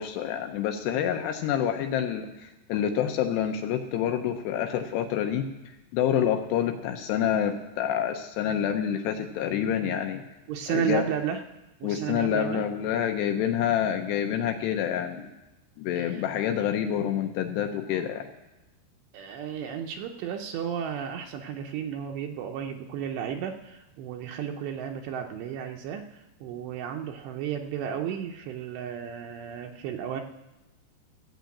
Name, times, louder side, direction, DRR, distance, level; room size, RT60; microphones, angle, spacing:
voice 1, 0.0-5.5 5.9-10.2 10.7-11.0 11.8-15.3 15.8-18.3, left 9 dB, 80° left, 6 dB, 2.7 m, -27 dB
voice 2, 10.5-11.4 11.8-12.6 16.0-16.5 19.1-30.2, right 8 dB, 80° right, 3 dB, 2.8 m, -33 dB
15.0 x 6.6 x 8.3 m, 1.0 s
omnidirectional pair, 5.1 m